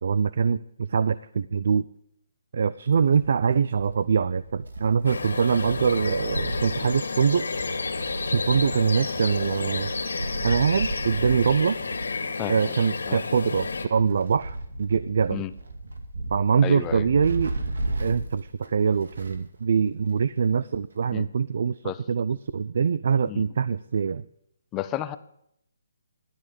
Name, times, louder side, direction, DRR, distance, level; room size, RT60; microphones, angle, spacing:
voice 1, 0.0-1.9 2.5-7.5 8.3-9.9 10.4-11.8 12.5-15.4 16.3-17.5 18.0-24.2, right 6 dB, 50° right, 16 dB, 0.5 m, -24 dB
Wind, 2.9-19.5 19.8-19.9 20.9-21.0, right 2 dB, 80° right, 2.4 m, -35 dB
sound 1, 5.0-13.9, left 4 dB, 85° left, 2.3 m, -31 dB
voice 2, 12.4-12.7 13.1-13.2 15.3-15.5 16.6-17.0 21.1-21.3 21.8-22.0 23.3-23.4 24.7-25.2, left 13 dB, 10° left, 11 dB, 0.5 m, -32 dB
13.0 x 10.0 x 5.1 m, 0.73 s
hypercardioid pair, 175°, 0 cm